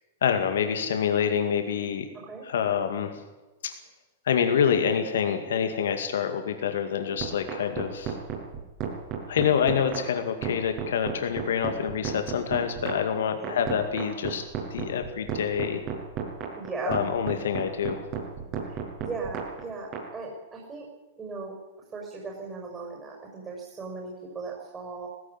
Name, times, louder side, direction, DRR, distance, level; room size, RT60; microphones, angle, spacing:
voice 1, 0.2-2.1 2.4-3.2 3.6-3.7 4.3-8.1 9.3-14.4 14.7-15.8 16.9-18.1, left 7 dB, 70° left, 7 dB, 2.2 m, -26 dB
sound 1, 7.2-20.0, right 9 dB, 45° right, 6.4 m, -32 dB
voice 2, 16.6-17.0 18.6-20.9 21.2-21.6 21.9-25.1, right 4 dB, 20° right, -1 dB, 6.0 m, -37 dB
18.0 x 16.0 x 9.8 m, 1.1 s
hypercardioid pair, 105°, 0 cm